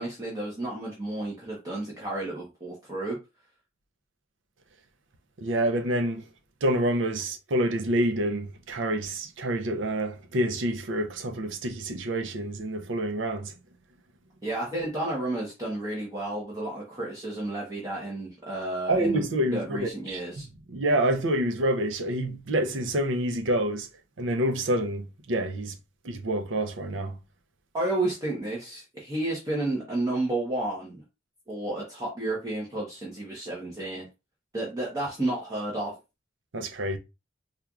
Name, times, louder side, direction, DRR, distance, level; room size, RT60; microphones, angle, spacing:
voice 1, 0.0-3.2 14.4-20.5 27.7-31.0 31.5-34.1 34.5-35.9, right 2 dB, 20° right, 0.9 m, -31 dB
voice 2, 5.4-6.2 6.6-13.5 18.9-23.9 24.2-25.7 26.0-27.2 36.5-37.0, right 1 dB, 80° right, 0.6 m, -27 dB
4.4 x 2.4 x 2.3 m
head